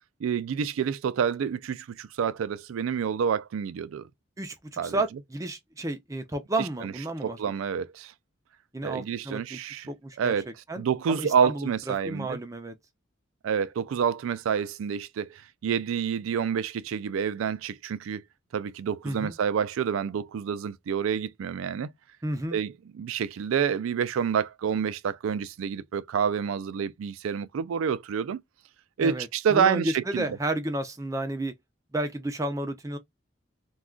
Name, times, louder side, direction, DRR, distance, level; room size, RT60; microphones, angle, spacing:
voice 1, 0.2-4.1 4.8-5.0 6.6-6.9 7.2-8.1 8.8-9.9 10.2-10.5 10.7-12.4 13.4-18.2 18.5-21.9 22.5-28.4 29.0-30.3, right 7 dB, 85° right, 0.3 m, -28 dB
voice 2, 4.4-7.4 8.7-9.6 9.9-12.7 19.0-19.3 22.2-22.6 29.0-31.5 31.9-33.0, right 1 dB, 15° right, 0.4 m, -32 dB
2.3 x 2.2 x 3.5 m
head